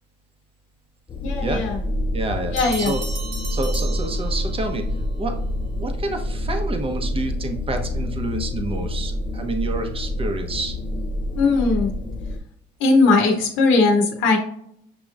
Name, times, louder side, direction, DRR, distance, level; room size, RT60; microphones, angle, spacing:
sound 1, 1.1-12.4, left 1 dB, 25° left, 0.4 m, -27 dB
voice 1, 1.2-1.8 2.5-2.9 11.4-11.9 12.8-14.4, left 3 dB, 75° left, 2 dB, 0.8 m, -18 dB
voice 2, 2.1-3.0 3.5-4.8 5.2-5.3 5.8-10.8, right 2 dB, 30° right, 5 dB, 0.9 m, -28 dB
Bell, 2.6-4.8, right 3 dB, 75° right, 1.5 m, -35 dB
6.8 x 2.9 x 2.4 m, 0.71 s
cardioid pair, 105°, 20 cm